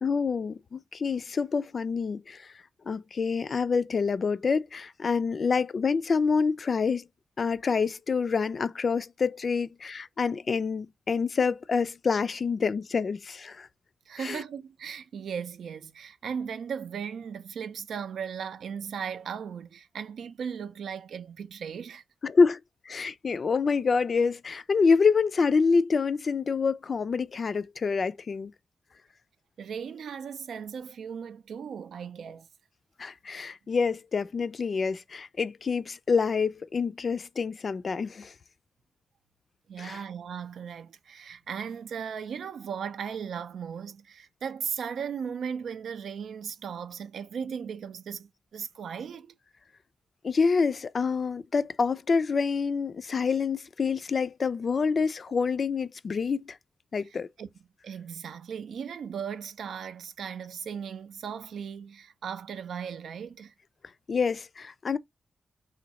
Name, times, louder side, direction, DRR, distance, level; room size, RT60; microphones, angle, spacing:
voice 1, 0.0-2.5 2.9-7.0 7.4-13.7 14.2-14.4 22.2-22.6 22.9-28.5 33.0-38.3 39.8-40.0 50.2-56.6 56.9-57.3 64.1-65.0, left 5 dB, 55° left, 0.3 m, -27 dB
voice 2, 14.1-22.0 29.6-32.5 39.7-49.3 57.1-57.5 57.8-63.5, right 7 dB, 90° right, 0.4 m, -37 dB
3.1 x 2.6 x 3.9 m
cardioid pair, 85°, 0 cm